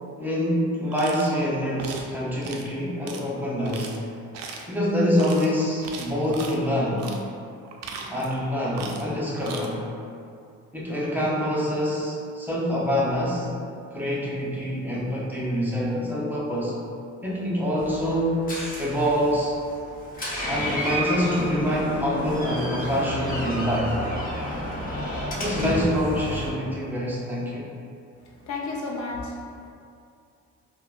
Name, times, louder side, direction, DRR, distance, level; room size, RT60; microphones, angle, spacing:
voice 1, 0.2-4.0 4.7-7.1 8.1-9.9 10.7-13.5 13.9-16.8 17.2-19.6 20.5-24.0 25.3-27.7, equal, 5° right, -6 dB, 0.6 m, -26 dB
sound 1, 0.9-1.3 1.8-2.1 2.4-2.7 3.1-3.2 3.6-4.0 4.3-4.7 5.1-5.5 5.8-6.6 7.0-7.2 7.6-8.4 8.7-9.1 9.4-9.7, right 5 dB, 60° right, 0.4 m, -38 dB
Door, 17.8-26.5, equal, 30° left, 0.7 m, -31 dB
voice 2, 28.2-29.7, left 3 dB, 70° left, -1 dB, 0.6 m, -33 dB
3.4 x 2.2 x 2.4 m, 2.4 s
cardioid pair, 90°, 30 cm